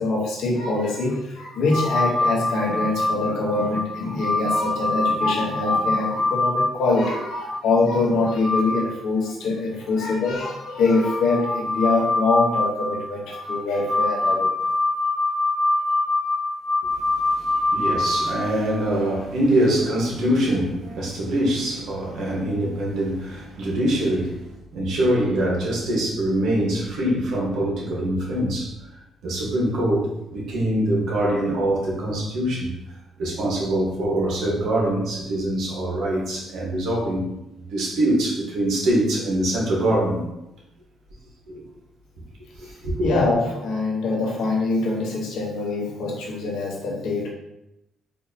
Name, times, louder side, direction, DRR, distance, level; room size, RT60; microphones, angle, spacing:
voice 1, 0.0-14.5 43.0-47.3, left 3 dB, 80° left, -2 dB, 0.9 m, -24 dB
sound 1, 1.7-7.6 8.1-8.9 9.2-9.3 10.4-18.9 21.0-21.1, left 2 dB, 45° right, 0.9 m, -25 dB
voice 2, 17.3-24.4 24.7-28.7 29.2-32.7 33.2-37.3 37.7-40.2 41.5-41.6 42.6-43.1, right 1 dB, 75° right, -4 dB, 1.3 m, -24 dB
4.3 x 2.7 x 2.7 m, 0.89 s
cardioid pair, 90°, 0 cm